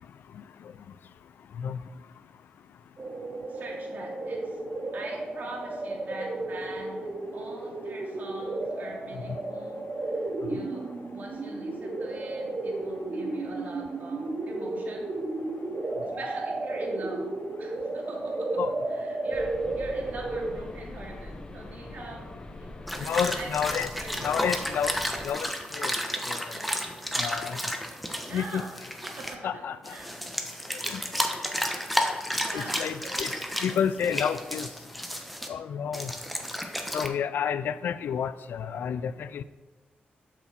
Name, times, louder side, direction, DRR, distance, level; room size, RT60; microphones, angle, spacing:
sound 1, 3.0-20.6, right 2 dB, 35° right, 1.2 m, -33 dB
voice 1, 3.5-4.6 4.9-15.1 15.8-17.3 17.6-18.6 18.9-22.3 22.6-22.7 23.0-24.3 28.3-31.3 31.6-31.9 32.4-33.5, right 2 dB, 55° right, -2 dB, 2.8 m, -43 dB
sound 2, 19.3-25.3, left 1 dB, 25° left, 1.0 m, -43 dB
sound 3, 22.9-29.3 29.8-35.5 35.9-37.1, equal, ahead, 1.1 m, -32 dB
voice 2, 23.0-23.9 24.2-25.0 25.2-25.5 25.7-25.9 26.3-26.4 27.2-27.7 28.3-28.6 29.4-30.0 30.9-31.0 32.5-33.3 33.6-34.7 35.5-36.1 36.9-39.4, left 8 dB, 75° left, 15 dB, 0.4 m, -30 dB
12.0 x 6.0 x 4.4 m, 1.2 s
cardioid pair, 90°, 3 cm